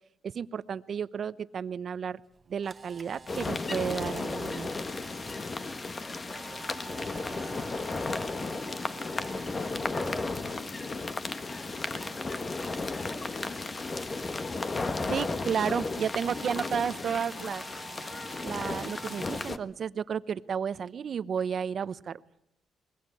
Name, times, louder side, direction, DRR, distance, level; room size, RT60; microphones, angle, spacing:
voice 1, 0.2-2.2 2.5-4.7 15.1-17.6 18.4-22.2, right 7 dB, 55° right, 0.9 m, -32 dB
Camera, 2.3-10.6 10.9-15.4 15.9-19.5, right 5 dB, 30° right, 1.2 m, -49 dB
sound 1, 3.3-19.6, left 3 dB, 30° left, 1.5 m, -34 dB
voice 2, 5.7-14.6 14.9-15.3, right 1 dB, 5° right, 2.4 m, -50 dB
24.0 x 21.5 x 8.6 m
cardioid pair, 90°, 0 cm